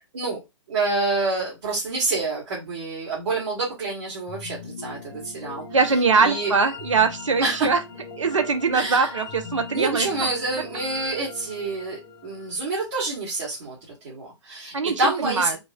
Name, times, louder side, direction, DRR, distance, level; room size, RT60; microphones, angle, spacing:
voice 1, 0.7-5.6 6.2-6.5 7.4-7.7 8.7-9.1 9.7-15.6, right 3 dB, 60° right, 1.4 m, -27 dB
sound 1, 4.3-13.4, left 4 dB, 55° left, 0.9 m, -40 dB
voice 2, 5.7-7.8 8.2-10.3 14.7-15.6, right 4 dB, 75° right, 0.8 m, -22 dB
3.9 x 2.4 x 2.3 m
figure-of-eight pair, 115°, 16 cm